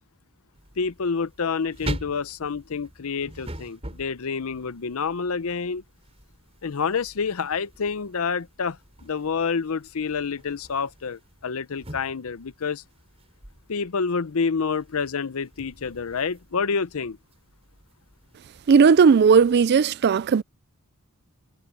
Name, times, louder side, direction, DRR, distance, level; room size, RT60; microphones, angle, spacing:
sound 1, 0.5-19.7, right 1 dB, 30° right, 3.8 m, -43 dB
voice 1, 0.8-5.8 6.6-12.8 13.7-17.2, left 5 dB, 70° left, 0.7 m, -28 dB
voice 2, 18.7-20.4, right 6 dB, 50° right, 0.4 m, -16 dB
head